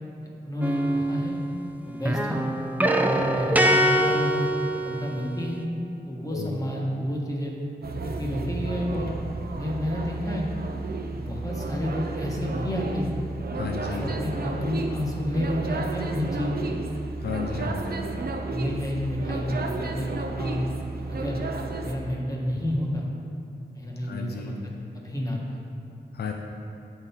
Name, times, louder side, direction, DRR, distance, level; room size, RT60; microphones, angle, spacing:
voice 1, 0.4-1.4 1.8-2.4 3.0-4.5 4.7-5.6 6.0-7.5 8.0-9.1 9.5-10.5 11.1-13.1 13.9-16.7 17.5-17.7 18.5-20.7 21.1-21.4 21.8-23.1 23.7-24.6 24.9-25.6, equal, 20° left, -3 dB, 1.2 m, -30 dB
sound 1, 0.6-1.7 2.0-5.5, right 1 dB, 10° right, 0.4 m, -24 dB
sound 2, 7.8-21.9, right 3 dB, 60° right, 0.5 m, -32 dB
voice 2, 13.5-14.1 17.2-18.0 24.0-24.6 26.1-26.3, left 5 dB, 65° left, 2 dB, 0.5 m, -33 dB
8.0 x 3.8 x 4.2 m, 2.6 s
cardioid pair, 55°, 18 cm